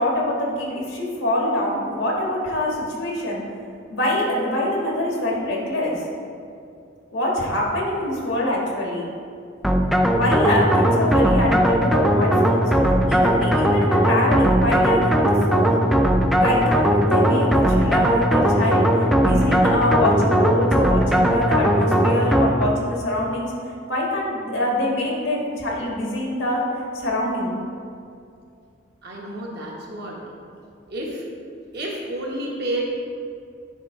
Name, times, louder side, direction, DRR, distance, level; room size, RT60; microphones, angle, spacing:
voice 1, 0.0-3.4 3.9-5.9 7.1-9.1 10.1-12.7 13.0-15.8 16.3-23.5 23.9-26.6 26.9-27.6, left 1 dB, 90° left, -3 dB, 1.5 m, -24 dB
sound 1, 9.6-22.8, equal, ahead, 0.3 m, -18 dB
voice 2, 29.0-30.3 30.9-31.3 31.7-32.8, right 1 dB, 60° right, -2 dB, 1.2 m, -30 dB
9.7 x 3.5 x 3.7 m, 2.5 s
head